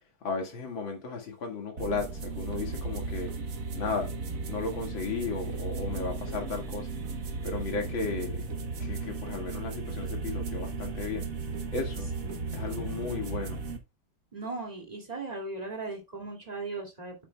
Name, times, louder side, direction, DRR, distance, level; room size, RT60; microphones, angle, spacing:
voice 1, 0.2-3.3 3.7-4.1 4.5-6.9 7.4-8.4 8.8-11.3 11.7-12.1 12.5-13.6, left 4 dB, 60° left, 2.7 m, -34 dB
sound 1, 1.8-13.8, right 3 dB, 45° right, 1.3 m, -35 dB
voice 2, 12.2-13.1 14.3-17.1, right 3 dB, 15° right, 2.5 m, -38 dB
8.8 x 8.4 x 2.3 m
omnidirectional pair, 2.4 m